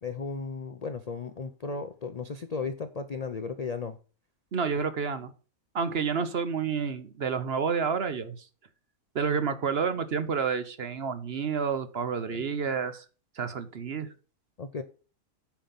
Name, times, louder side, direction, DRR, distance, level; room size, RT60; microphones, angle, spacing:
voice 1, 0.0-4.0 14.6-14.8, left 4 dB, 60° left, 11 dB, 0.4 m, -35 dB
voice 2, 4.5-5.3 5.7-8.5 9.1-13.0 13.4-14.1, right 6 dB, 50° right, 12 dB, 0.9 m, -29 dB
8.9 x 5.6 x 5.6 m, 0.36 s
omnidirectional pair, 1.6 m